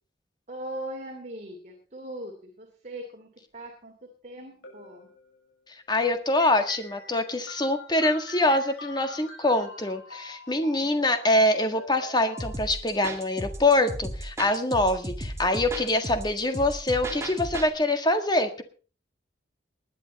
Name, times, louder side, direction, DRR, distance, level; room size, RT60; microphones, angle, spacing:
voice 1, 0.5-5.1, right 1 dB, 40° right, 2 dB, 2.8 m, -40 dB
sound 1, 4.3-5.7 6.4-12.5, left 1 dB, 90° left, 6.6 m, -45 dB
voice 2, 5.9-18.6, left 1 dB, 25° left, 7 dB, 1.6 m, -24 dB
sound 2, 12.4-17.7, right 1 dB, 15° right, 2.5 m, -35 dB
20.0 x 10.0 x 4.2 m, 0.38 s
head